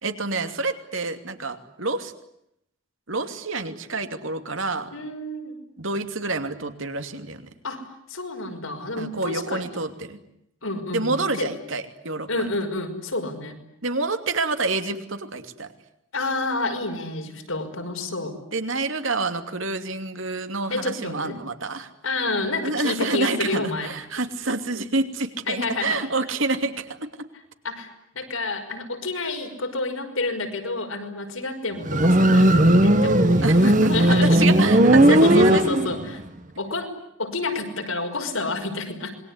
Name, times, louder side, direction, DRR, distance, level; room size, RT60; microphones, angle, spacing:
voice 1, 0.0-2.1 3.1-4.9 5.8-7.4 9.0-10.2 10.9-12.5 13.8-15.7 18.5-21.9 22.6-27.1 33.4-35.6, right 3 dB, 75° right, 8 dB, 2.8 m, -28 dB
voice 2, 4.9-5.6 7.6-9.7 10.6-11.5 12.3-13.6 16.1-18.4 20.7-21.4 22.0-23.9 25.5-26.0 27.6-27.9 28.1-34.5 35.1-36.2 36.6-36.9 37.2-39.1, left 2 dB, 90° left, 5 dB, 5.6 m, -29 dB
Motorcycle, 31.8-36.2, right 1 dB, 40° right, 1.5 m, -16 dB
27.0 x 22.5 x 9.9 m, 0.79 s
head